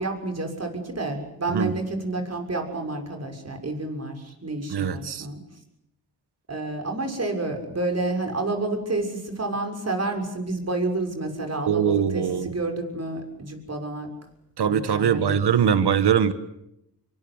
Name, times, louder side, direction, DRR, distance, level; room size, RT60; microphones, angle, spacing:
voice 1, 0.0-5.4 6.5-14.1 14.6-15.5, right 2 dB, 40° right, 3 dB, 6.6 m, -29 dB
voice 2, 4.7-5.3 11.7-12.5 14.6-16.3, right 8 dB, 80° right, 12 dB, 1.5 m, -22 dB
26.5 x 23.0 x 8.1 m, 0.80 s
cardioid pair, 80°, 39 cm